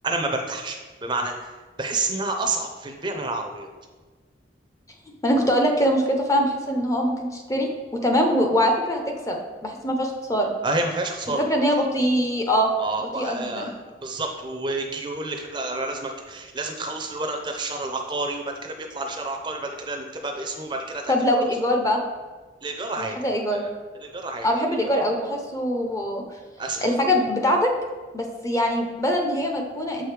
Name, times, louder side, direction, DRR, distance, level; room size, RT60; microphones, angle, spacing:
voice 1, 0.0-1.5 1.8-3.7 10.6-11.4 12.8-13.7 14.0-21.1 22.6-23.7 24.0-24.5 26.6-26.9, right 2 dB, 25° right, 3 dB, 0.5 m, -29 dB
voice 2, 5.2-10.5 11.3-12.7 13.0-13.7 21.1-22.0 23.0-23.6 24.4-26.2 26.8-27.7 28.1-30.1, equal, 20° left, 2 dB, 0.6 m, -23 dB
7.2 x 4.7 x 3.3 m, 1.4 s
head